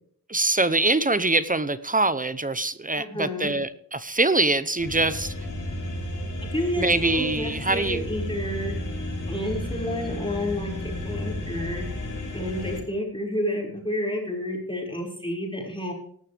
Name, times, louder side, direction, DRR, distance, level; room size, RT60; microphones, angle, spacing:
voice 1, 0.3-5.3 6.8-8.0, right 2 dB, 20° right, 14 dB, 0.8 m, -24 dB
voice 2, 3.0-3.5 6.5-8.8 9.3-11.9 12.3-15.9, left 1 dB, 15° left, 0 dB, 5.6 m, -30 dB
sound 1, 4.8-12.8, left 1 dB, 55° left, 4.8 m, -33 dB
18.0 x 13.0 x 3.5 m, 0.63 s
wide cardioid pair, 115°, 36 cm